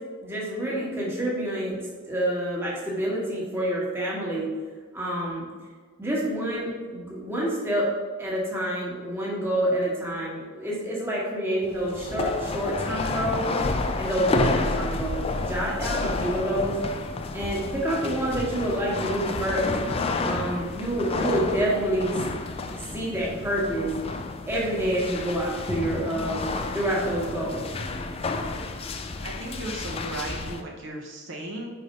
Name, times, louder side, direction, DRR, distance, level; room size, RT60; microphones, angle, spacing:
voice 1, 0.2-1.7 2.1-4.5 4.9-5.4 6.0-7.9 8.2-13.6 14.0-16.8 17.3-19.7 20.2-22.1 22.7-23.9 24.5-26.5 26.7-27.7, right 1 dB, 10° right, -5 dB, 1.3 m, -28 dB
sound 1, 11.6-30.6, left 3 dB, 25° left, 0.3 m, -30 dB
voice 2, 29.2-31.7, right 1 dB, 55° right, -1 dB, 0.8 m, -35 dB
4.8 x 4.2 x 5.2 m, 1.5 s
head